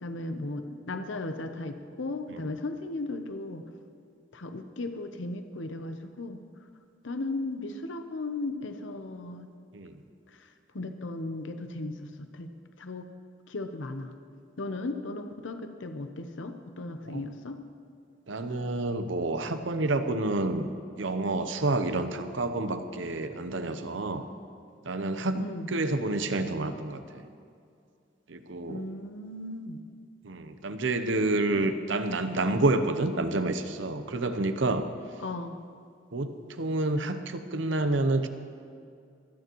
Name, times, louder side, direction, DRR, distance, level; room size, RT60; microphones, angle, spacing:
voice 1, 0.0-3.6 4.3-6.4 7.0-9.5 10.3-10.5 10.7-12.5 12.8-13.1 13.5-14.1 14.6-17.6 25.3-25.7 28.7-29.8 35.2-35.6, left 2 dB, 80° left, 7 dB, 0.8 m, -36 dB
voice 2, 18.3-20.7 21.0-24.2 24.8-27.2 28.3-28.8 30.2-34.9 36.1-38.3, right 2 dB, 75° right, 9 dB, 0.8 m, -29 dB
25.0 x 9.4 x 3.1 m, 2.3 s
head